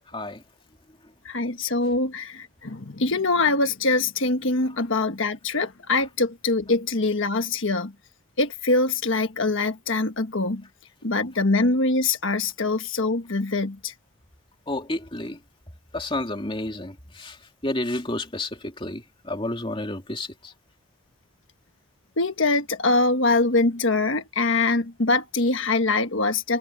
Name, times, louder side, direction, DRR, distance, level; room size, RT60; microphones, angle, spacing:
voice 1, 1.2-7.9 8.4-10.6 11.0-13.9 22.2-26.6, left 3 dB, 65° left, 1.4 m, -23 dB
voice 2, 14.7-15.4 15.9-17.4 17.6-20.5, left 1 dB, 25° left, 2.7 m, -30 dB
head